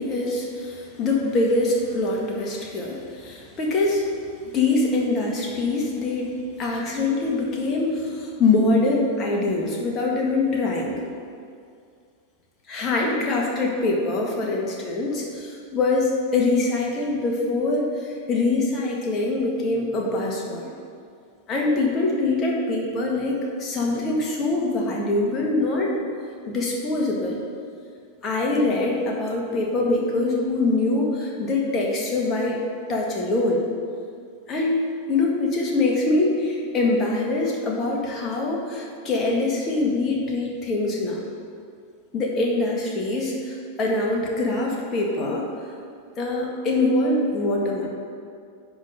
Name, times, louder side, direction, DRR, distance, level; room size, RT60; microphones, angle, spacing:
voice 1, 0.0-4.1 4.4-11.0 12.7-20.7 21.5-25.9 26.5-27.4 28.2-32.6 32.9-33.6 34.5-34.8 35.1-41.2 42.1-45.5 46.2-47.9, left 2 dB, 30° left, -2 dB, 1.7 m, -24 dB
10.0 x 3.8 x 6.7 m, 2.3 s
figure-of-eight pair, 90°, 0 cm